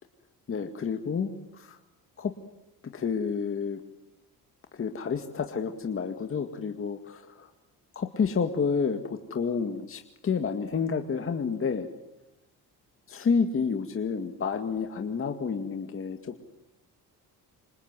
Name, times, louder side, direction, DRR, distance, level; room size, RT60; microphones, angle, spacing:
voice 1, 0.5-1.8 2.2-2.3 2.9-3.8 4.7-7.5 8.0-11.9 13.1-16.5, left 5 dB, 35° left, 5 dB, 2.1 m, -30 dB
29.0 x 26.5 x 7.7 m, 0.95 s
cardioid pair, 145°, 37 cm